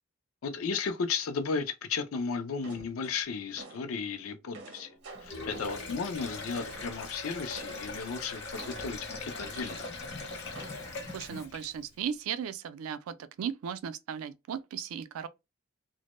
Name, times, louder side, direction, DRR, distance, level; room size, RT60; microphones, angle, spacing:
voice 1, 0.4-4.9 5.2-9.9, left 5 dB, 80° left, 0.4 m, -34 dB
sound 1, 2.6-3.9 4.3-7.1 7.5-8.0 8.6-10.2 10.5-11.2, right 3 dB, 60° right, 0.7 m, -49 dB
Sink (filling or washing), 5.1-12.0, left 3 dB, 55° left, 0.8 m, -41 dB
Fowl, 6.2-11.5, left 2 dB, 15° left, 0.4 m, -47 dB
voice 2, 11.1-15.3, right 8 dB, 90° right, 0.3 m, -36 dB
2.1 x 2.0 x 2.9 m
head